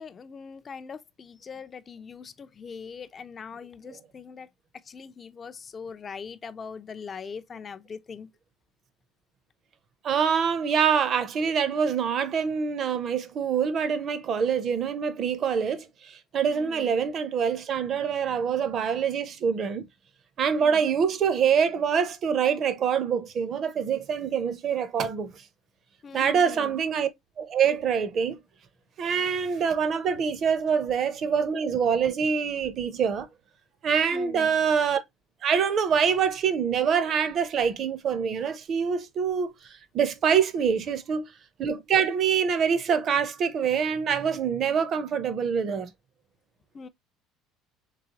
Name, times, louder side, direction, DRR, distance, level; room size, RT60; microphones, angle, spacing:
voice 1, 0.0-4.5 4.9-8.3 16.5-17.0 20.5-20.8 26.0-26.8 34.1-34.5 46.7-46.9, left 6 dB, 25° left, 0.4 m, -41 dB
voice 2, 10.0-19.9 20.4-25.4 26.1-27.1 27.4-28.4 29.0-33.3 33.8-35.0 35.4-41.2 41.6-45.9, right 7 dB, 35° right, 0.6 m, -25 dB
3.8 x 3.4 x 2.8 m
cardioid pair, 160°, 0 cm